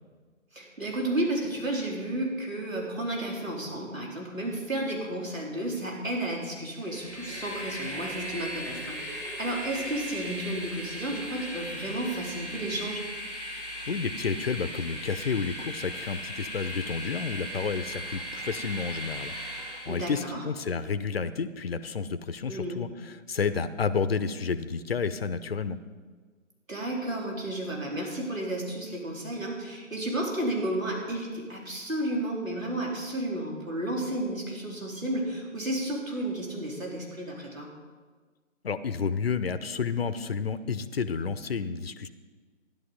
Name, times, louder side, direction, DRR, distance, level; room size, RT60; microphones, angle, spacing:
voice 1, 0.5-13.0 19.9-20.4 22.5-22.8 26.7-37.7, right 1 dB, 80° right, -2 dB, 4.2 m, -32 dB
Train, 6.7-20.2, equal, ahead, 1.5 m, -38 dB
voice 2, 13.9-25.8 38.6-42.1, left 5 dB, 50° left, 12 dB, 0.8 m, -31 dB
14.0 x 11.0 x 5.3 m, 1.5 s
figure-of-eight pair, 150°, 39 cm